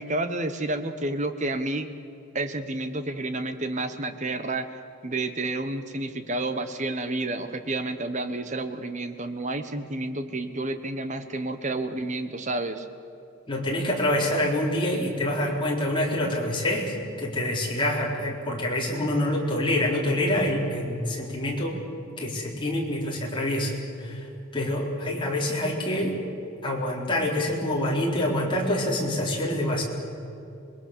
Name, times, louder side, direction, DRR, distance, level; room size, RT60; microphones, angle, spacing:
voice 1, 0.0-1.9 2.3-4.7 5.0-12.9, right 2 dB, 35° right, 9 dB, 1.2 m, -30 dB
voice 2, 13.5-21.8 22.2-23.7 24.0-24.3 24.5-26.2 26.6-29.8, left 1 dB, 25° left, -3 dB, 4.1 m, -26 dB
26.5 x 21.5 x 6.9 m, 2.7 s
head